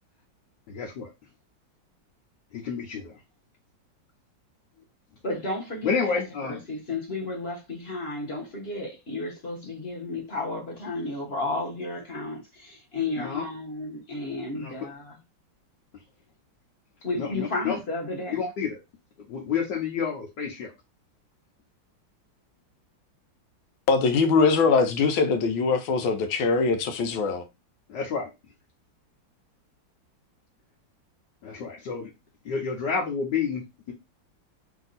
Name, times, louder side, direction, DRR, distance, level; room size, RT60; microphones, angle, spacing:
voice 1, 0.7-1.1 2.5-3.2 5.8-6.6 13.2-13.4 14.6-14.7 17.2-17.8 18.3-18.8 19.2-20.7 27.9-28.3 31.4-32.1 32.4-33.6, left 6 dB, 70° left, 1.4 m, -29 dB
voice 2, 5.2-15.2 17.0-18.5, left 2 dB, 35° left, 1.3 m, -33 dB
voice 3, 23.9-27.4, left 4 dB, 85° left, 1.5 m, -22 dB
3.4 x 2.8 x 3.9 m
omnidirectional pair, 2.1 m